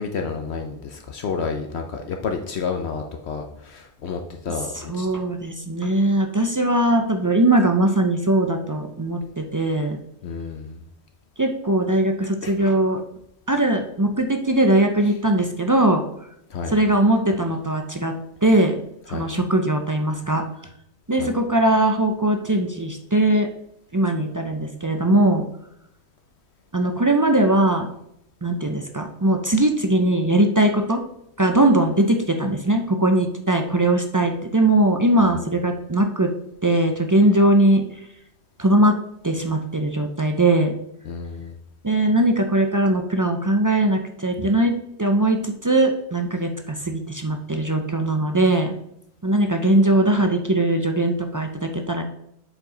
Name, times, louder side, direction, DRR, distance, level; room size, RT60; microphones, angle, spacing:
voice 1, 0.0-5.1 10.2-10.8 12.4-12.5 16.5-16.7 19.1-19.3 21.2-21.3 35.2-35.4 41.1-41.5, left 5 dB, 65° left, 4 dB, 1.0 m, -30 dB
voice 2, 4.7-10.0 11.4-13.0 13.5-16.0 16.7-18.1 18.4-18.7 19.1-20.4 21.1-23.5 23.9-25.4 26.7-27.9 28.4-31.0 31.4-36.3 36.6-37.8 38.6-38.9 39.2-40.7 41.8-48.7 49.2-52.0, right 1 dB, 30° right, 4 dB, 0.3 m, -20 dB
7.7 x 4.9 x 3.8 m, 0.78 s
omnidirectional pair, 1.2 m